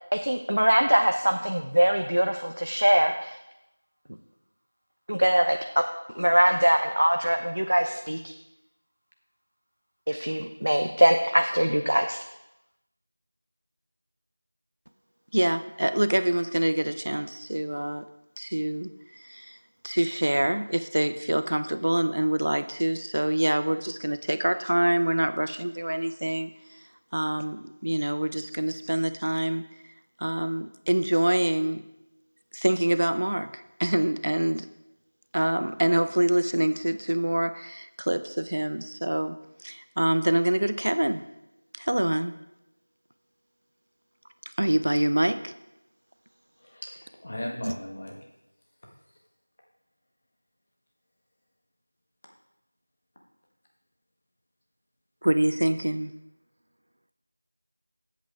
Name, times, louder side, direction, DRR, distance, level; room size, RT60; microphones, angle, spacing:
voice 1, 0.1-3.4 5.1-5.6 6.1-8.3 10.1-12.2, equal, 90° right, 5 dB, 0.7 m, -22 dB
voice 2, 15.3-18.0 18.4-18.9 19.2-19.6 19.8-26.5 27.1-29.6 30.2-31.8 32.5-34.7 35.3-39.4 39.6-41.2 41.8-42.3 44.6-45.5 47.6-47.7 55.2-56.1, right 1 dB, 55° right, 11 dB, 0.5 m, -25 dB
voice 3, 46.6-48.1, left 1 dB, 25° left, -1 dB, 1.3 m, -37 dB
12.0 x 8.2 x 3.6 m, 0.91 s
figure-of-eight pair, 180°, 0 cm